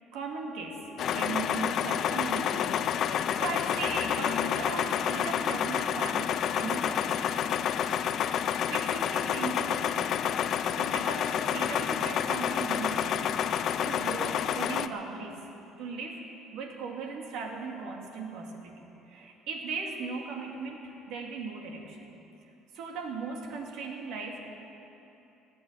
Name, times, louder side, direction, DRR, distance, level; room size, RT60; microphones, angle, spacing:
voice 1, 0.1-7.2 8.4-10.3 10.8-13.4 13.8-15.5 15.8-16.2 16.5-18.8 19.0-22.0 22.4-24.5, right 4 dB, 65° right, 1 dB, 2.3 m, -38 dB
sound 1, 1.0-14.9, left 9 dB, 45° left, 0.5 m, -29 dB
16.5 x 9.7 x 8.1 m, 3.0 s
cardioid pair, 150°, 0 cm